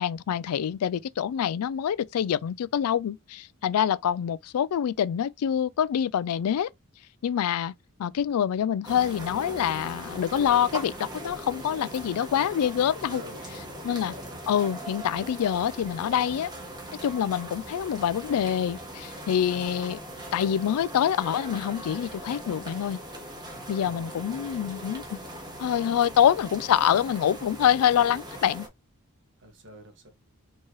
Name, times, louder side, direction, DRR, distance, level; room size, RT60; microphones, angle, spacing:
voice 1, 0.0-6.7 7.2-7.7 8.0-13.2 13.8-14.1 14.5-16.5 17.0-20.0 20.3-23.0 23.7-25.2 25.6-28.7, left 9 dB, 80° left, 0.3 m, -26 dB
sound 1, 8.8-28.7, right 1 dB, 20° right, 1.3 m, -40 dB
voice 2, 13.1-14.2 23.8-24.9 26.1-26.2 29.4-30.1, right 1 dB, 55° right, 1.4 m, -49 dB
4.6 x 3.0 x 3.0 m
head